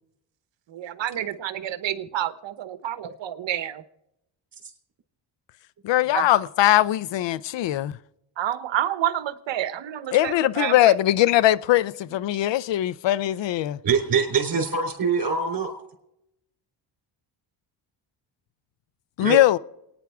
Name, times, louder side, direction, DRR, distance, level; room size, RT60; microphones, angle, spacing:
voice 1, 0.7-3.8 6.1-6.2 8.4-10.9, right 11 dB, 60° right, 1.1 m, -29 dB
voice 2, 5.8-8.0 10.1-13.8 19.2-19.6, left 14 dB, 60° left, 0.6 m, -21 dB
voice 3, 13.8-15.7 19.2-19.4, right 5 dB, 45° right, 3.6 m, -23 dB
27.0 x 9.8 x 3.5 m
cardioid pair, 75°, 49 cm